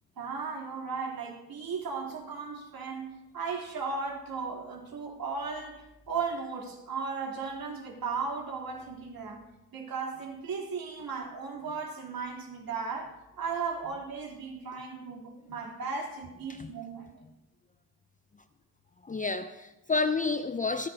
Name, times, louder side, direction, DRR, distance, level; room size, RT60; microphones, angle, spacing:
voice 1, 0.2-9.4 9.7-17.1, right 5 dB, 50° right, 3.6 m, -36 dB
voice 2, 19.0-20.9, left 4 dB, 20° left, 0.6 m, -30 dB
25.5 x 10.5 x 2.8 m
supercardioid pair, 70°, 45 cm